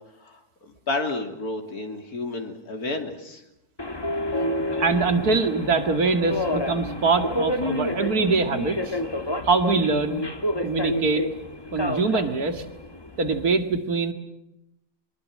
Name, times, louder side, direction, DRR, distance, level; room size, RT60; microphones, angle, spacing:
voice 1, 0.2-3.4, left 2 dB, 85° left, 4 dB, 3.3 m, -31 dB
Subway metro underground, 3.8-13.5, left 1 dB, 15° left, 1.5 m, -29 dB
voice 2, 4.8-9.0 9.4-10.2 10.6-11.3 11.7-12.6 13.2-14.1, right 4 dB, 80° right, 8 dB, 2.7 m, -23 dB
24.0 x 22.0 x 7.7 m, 0.85 s
omnidirectional pair, 1.6 m